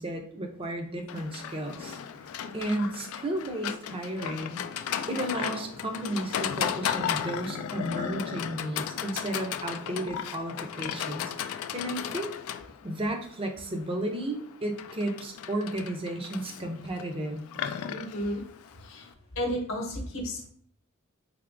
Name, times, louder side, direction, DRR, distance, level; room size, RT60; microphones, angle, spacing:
voice 1, 0.0-2.0 2.5-4.6 5.1-12.3 12.8-17.4, right 1 dB, 25° right, 4 dB, 0.5 m, -33 dB
Livestock farm animals working animals, 1.1-19.1, left 8 dB, 90° left, 0.3 m, -35 dB
voice 2, 17.9-18.4 18.8-19.1 19.4-20.5, equal, 65° left, 1 dB, 0.9 m, -32 dB
3.8 x 3.4 x 2.5 m, 0.62 s
head